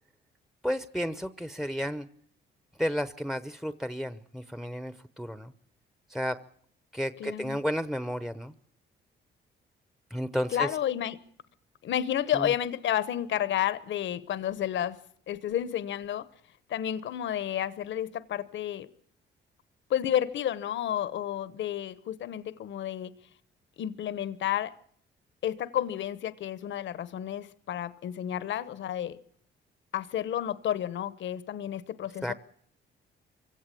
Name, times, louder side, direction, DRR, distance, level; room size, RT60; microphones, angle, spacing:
voice 1, 0.6-2.1 2.8-5.5 6.1-6.4 6.9-8.5 10.1-10.7 12.3-12.5 32.2-32.3, equal, ahead, 0.9 m, -32 dB
voice 2, 7.2-7.6 10.5-11.2 11.8-15.0 15.3-16.3 16.7-18.9 19.9-23.1 23.8-24.8 25.4-29.2 29.9-32.3, left 10 dB, 70° left, 1.0 m, -31 dB
24.0 x 17.0 x 8.5 m
cardioid pair, 90°, 20 cm